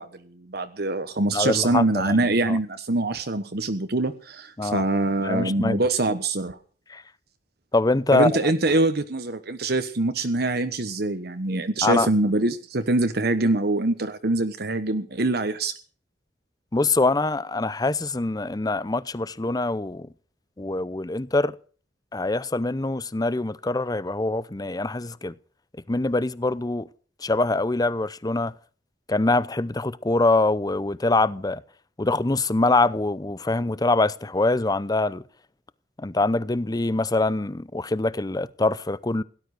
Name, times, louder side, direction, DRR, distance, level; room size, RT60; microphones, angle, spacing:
voice 1, 0.0-6.6 8.1-15.7, right 2 dB, 60° right, 1.2 m, -24 dB
voice 2, 1.3-2.2 2.5-2.6 4.6-4.8 5.2-5.8 6.9-7.0 7.7-8.3 11.8-12.1 16.7-20.1 20.6-21.5 22.1-25.3 25.9-26.9 27.2-28.5 29.1-31.6 32.0-35.2 36.0-39.2, left 2 dB, 20° left, 0.7 m, -24 dB
17.5 x 12.0 x 6.6 m
head